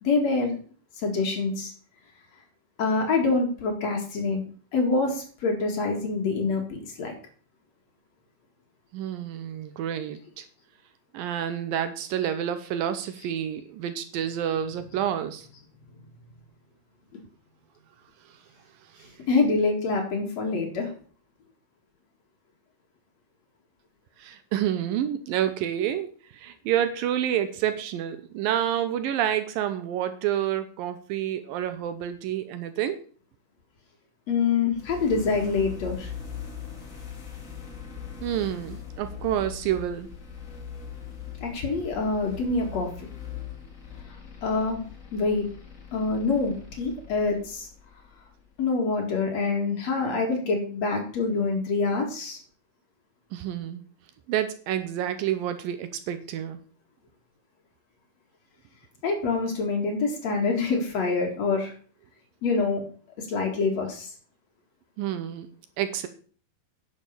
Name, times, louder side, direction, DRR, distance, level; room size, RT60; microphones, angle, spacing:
voice 1, 0.0-0.6 1.0-1.7 2.8-4.4 4.7-7.1 19.3-20.9 34.3-36.1 41.4-42.9 44.4-44.8 45.1-45.5 45.9-47.7 48.6-52.4 59.0-61.7 62.4-62.8 63.2-64.1, left 4 dB, 50° left, 1 dB, 2.9 m, -26 dB
voice 2, 8.9-10.5 11.1-15.5 18.9-19.1 24.2-33.0 38.2-40.1 53.3-53.8 54.3-56.6 65.0-65.5 65.8-66.1, right 10 dB, 75° right, 10 dB, 2.4 m, -29 dB
sound 1, 34.7-48.6, left 7 dB, 30° left, 1.7 m, -41 dB
10.5 x 6.5 x 6.8 m, 0.44 s
omnidirectional pair, 4.4 m